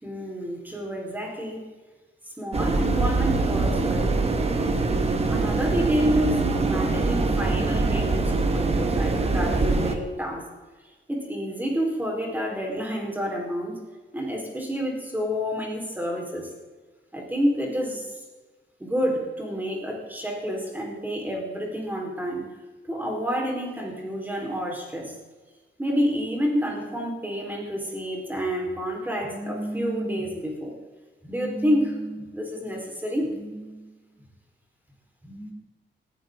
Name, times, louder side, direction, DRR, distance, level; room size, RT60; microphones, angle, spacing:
voice 1, 0.0-1.7 2.4-4.1 5.3-10.5 11.1-13.8 14.1-16.5 17.1-18.2 18.8-22.5 22.9-25.1 25.8-30.7 31.2-33.9 35.2-35.5, equal, 10° right, -1 dB, 4.5 m, -29 dB
sound 1, 2.5-10.0, right 3 dB, 30° right, 1.7 m, -23 dB
19.5 x 14.5 x 3.9 m, 1.3 s
wide cardioid pair, 160°, 20 cm